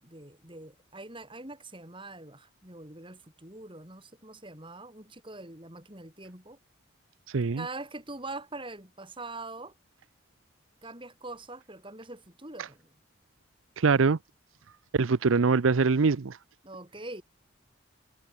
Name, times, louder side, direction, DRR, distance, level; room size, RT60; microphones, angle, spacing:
voice 1, 0.0-6.6 7.6-9.7 10.8-12.9 16.6-17.2, right 2 dB, 25° right, 6.3 m, -43 dB
voice 2, 7.3-7.6 13.8-14.2 14.9-16.4, right 4 dB, 75° right, 0.6 m, -23 dB
head